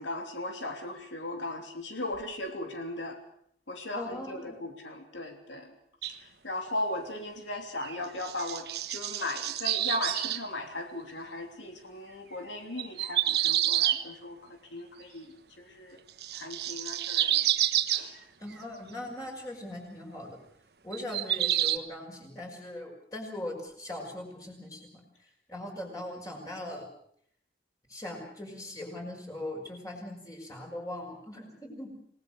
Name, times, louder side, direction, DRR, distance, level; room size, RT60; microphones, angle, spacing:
voice 1, 0.0-3.2 3.7-5.7 6.1-15.3 15.6-16.0 16.3-17.4 17.9-18.2, left 1 dB, 85° left, 4 dB, 3.2 m, -37 dB
voice 2, 3.9-4.6 18.4-20.4 20.8-24.9 25.5-26.8 27.9-31.9, left 1 dB, 20° left, 0 dB, 5.7 m, -40 dB
sound 1, 6.0-6.2 7.8-8.0 8.2-10.4 12.8-14.0 16.2-18.0 20.9-21.8, right 13 dB, 60° right, 1.2 m, -28 dB
28.5 x 18.5 x 6.7 m, 0.67 s
head